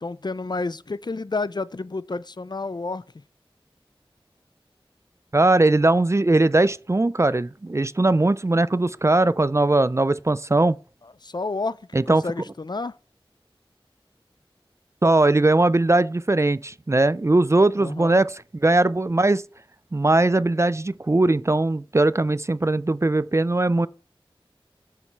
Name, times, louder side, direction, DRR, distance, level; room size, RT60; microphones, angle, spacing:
voice 1, 0.0-3.0 11.0-12.9 17.8-18.2, left 3 dB, 50° left, 0.4 m, -30 dB
voice 2, 5.3-10.8 11.9-12.2 15.0-19.4 19.9-23.9, right 2 dB, 30° right, 0.3 m, -20 dB
7.0 x 6.5 x 4.5 m
wide cardioid pair, 45°, 10 cm